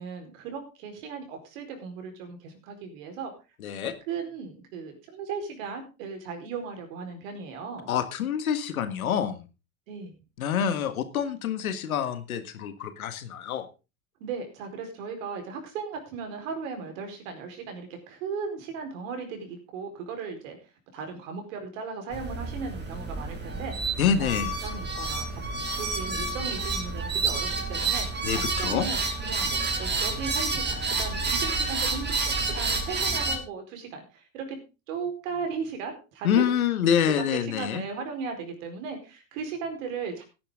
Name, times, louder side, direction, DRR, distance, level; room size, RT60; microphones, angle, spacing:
voice 1, 0.0-3.3 4.1-7.9 9.9-10.2 14.2-20.6 20.9-23.8 24.2-24.4 24.6-25.4 25.8-34.6 34.9-36.5 37.1-40.2, right 5 dB, 65° right, 5 dB, 4.6 m, -37 dB
voice 2, 3.6-3.9 7.9-9.4 10.4-13.7 24.0-24.5 28.2-28.9 36.2-37.8, left 8 dB, 80° left, 10 dB, 1.7 m, -26 dB
sound 1, 22.1-33.4, right 3 dB, 25° right, 3.3 m, -29 dB
16.0 x 10.0 x 3.8 m, 0.30 s
hypercardioid pair, 75°, 42 cm